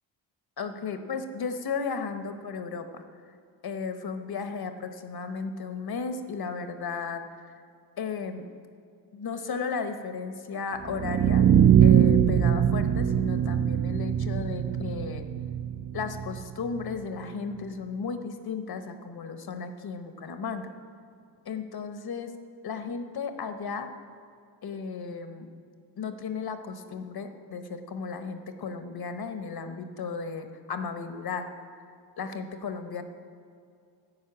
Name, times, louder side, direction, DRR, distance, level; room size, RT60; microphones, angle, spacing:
voice 1, 0.6-3.0 3.6-7.2 8.0-8.5 9.1-11.5 11.8-15.2 15.9-20.7 21.5-22.3 22.6-23.9 24.6-25.5 26.0-31.5 32.2-33.0, left 5 dB, 55° left, 8 dB, 0.9 m, -34 dB
sound 1, 10.8-16.9, right 9 dB, 35° right, 0.4 m, -22 dB
11.5 x 5.4 x 8.4 m, 2.4 s
cardioid pair, 80°, 45 cm